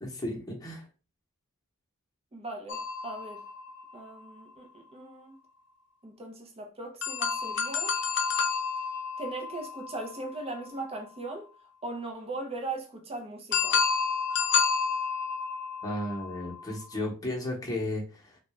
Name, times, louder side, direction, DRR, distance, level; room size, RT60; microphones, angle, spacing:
voice 1, 0.0-0.8 15.8-18.4, left 1 dB, 15° left, 1.1 m, -34 dB
voice 2, 2.3-3.5 3.9-5.4 6.0-8.0 9.2-11.5 11.8-13.8, right 2 dB, 25° right, 0.8 m, -39 dB
sound 1, 2.7-4.4 7.0-10.9 13.5-17.0, left 6 dB, 55° left, 0.6 m, -30 dB
3.8 x 2.3 x 3.1 m
head